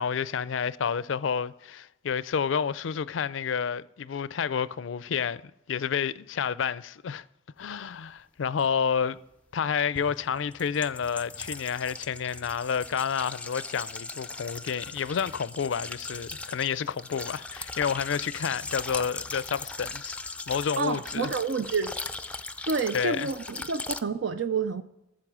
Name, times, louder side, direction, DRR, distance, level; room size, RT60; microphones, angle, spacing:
voice 1, 0.0-5.4 5.7-7.2 7.6-9.2 9.5-20.2 20.5-21.3 22.9-23.3, left 7 dB, 75° left, 0.4 m, -29 dB
sound 1, 8.6-8.7 9.9-24.0, left 3 dB, 5° left, 0.4 m, -39 dB
voice 2, 20.8-21.9 22.7-24.8, right 5 dB, 65° right, 0.5 m, -29 dB
13.5 x 7.5 x 6.1 m
head